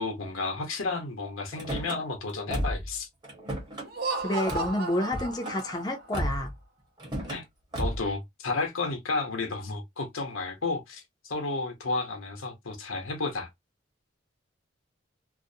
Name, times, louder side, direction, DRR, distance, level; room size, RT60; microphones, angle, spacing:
voice 1, 0.0-3.1 7.3-7.4 7.8-13.5, left 3 dB, 90° left, 0.8 m, -32 dB
Car / Slam, 1.5-2.0 2.5-2.9 3.2-3.9 4.5-4.7 5.1-5.6 6.1-6.5 7.0-7.4 7.7-8.1, equal, 20° right, 0.8 m, -33 dB
Laughter, 3.8-6.2, right 3 dB, 50° right, 0.6 m, -34 dB
voice 2, 4.2-6.5, left 1 dB, 20° left, 0.4 m, -29 dB
2.5 x 2.0 x 2.5 m
head